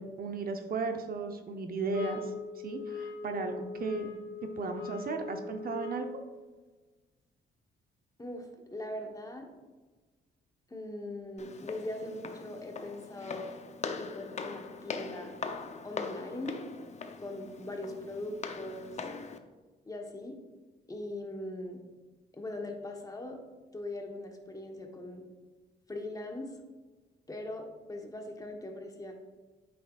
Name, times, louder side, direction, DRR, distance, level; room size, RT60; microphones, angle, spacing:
voice 1, 0.0-2.3 2.6-6.1, right 4 dB, 50° right, 5 dB, 0.7 m, -35 dB
sound 1, 1.9-6.3, left 5 dB, 75° left, 0.8 m, -40 dB
voice 2, 8.2-9.5 10.7-13.5 14.0-15.3 15.8-16.6 17.2-19.0 19.9-20.4 20.9-21.8 22.3-23.4 23.7-25.2 25.9-26.5 27.3-29.1, left 1 dB, 15° left, 3 dB, 1.1 m, -40 dB
Walk footsteps, 11.4-19.4, left 5 dB, 35° left, 0.6 m, -41 dB
8.1 x 6.0 x 2.4 m, 1.3 s
cardioid pair, 90°, 20 cm